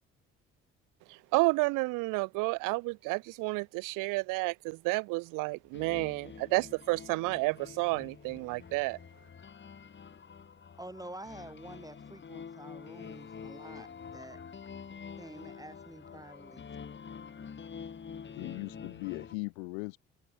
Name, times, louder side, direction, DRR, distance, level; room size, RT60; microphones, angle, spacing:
voice 1, 1.1-9.0, right 26 dB, 65° right, 0.6 m, -31 dB
sound 1, 5.7-19.3, left 6 dB, 30° left, 1.6 m, -47 dB
voice 2, 10.8-14.4 15.2-16.7, right 1 dB, 10° right, 2.5 m, -48 dB
voice 3, 18.3-20.0, left 30 dB, 75° left, 1.6 m, -38 dB
hypercardioid pair, 50°, 35 cm